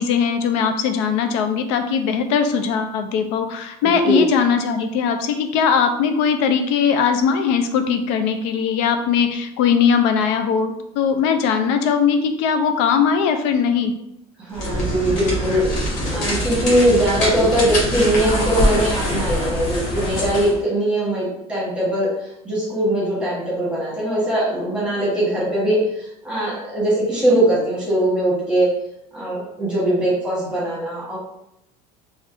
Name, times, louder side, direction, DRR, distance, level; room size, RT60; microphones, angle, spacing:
voice 1, 0.0-13.9, left 6 dB, 80° left, 7 dB, 0.4 m, -20 dB
voice 2, 3.8-4.2 14.4-15.6 16.1-22.1 22.4-28.7 29.1-31.2, right 1 dB, 5° right, -6 dB, 1.1 m, -21 dB
sound 1, 14.5-20.6, equal, 55° left, 1.2 m, -23 dB
3.4 x 2.5 x 2.5 m, 0.81 s
cardioid pair, 165°, 15 cm